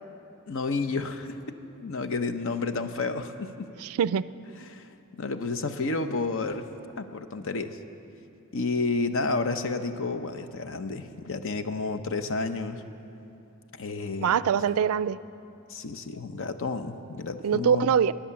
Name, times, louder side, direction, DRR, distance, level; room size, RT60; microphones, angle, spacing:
voice 1, 0.5-1.4 1.8-3.7 4.6-6.7 7.0-7.8 8.5-12.8 13.8-14.3 15.7-17.9, left 3 dB, 65° left, 9 dB, 0.7 m, -31 dB
voice 2, 3.8-4.3 14.2-15.2 17.4-18.1, right 7 dB, 70° right, 17 dB, 0.3 m, -23 dB
16.0 x 10.0 x 6.9 m, 2.8 s
head